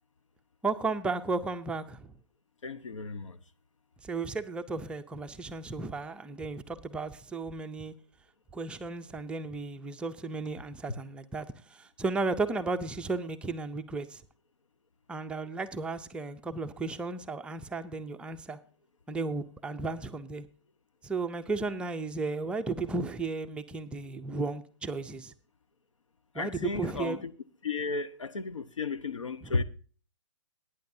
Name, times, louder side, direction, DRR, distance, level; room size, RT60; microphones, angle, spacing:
voice 1, 0.6-2.1 4.0-7.9 8.5-14.2 15.1-18.6 19.1-20.5 21.0-25.3 26.3-27.3 29.4-29.5, right 3 dB, 5° right, 0.5 m, -34 dB
voice 2, 2.6-3.4 26.3-27.2 27.6-29.6, left 4 dB, 90° left, 1.0 m, -33 dB
17.0 x 9.5 x 2.7 m
hypercardioid pair, 140°, 16 cm